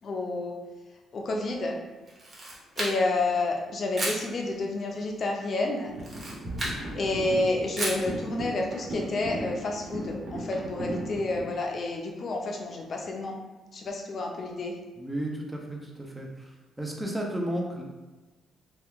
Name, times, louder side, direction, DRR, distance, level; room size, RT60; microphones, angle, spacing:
voice 1, 0.0-0.6 1.1-1.8 2.8-5.9 6.9-13.4 13.7-14.8, left 2 dB, 50° left, 1 dB, 0.5 m, -29 dB
Camera, 2.1-3.2 3.9-4.3 5.9-6.8 7.8-8.1, right 1 dB, 35° right, 1.0 m, -33 dB
sound 1, 5.9-11.4, right 1 dB, 70° right, 1.1 m, -37 dB
voice 2, 15.0-17.8, right 1 dB, 10° right, -1 dB, 0.6 m, -33 dB
2.9 x 2.3 x 3.5 m, 1.2 s
cardioid pair, 90°, 0 cm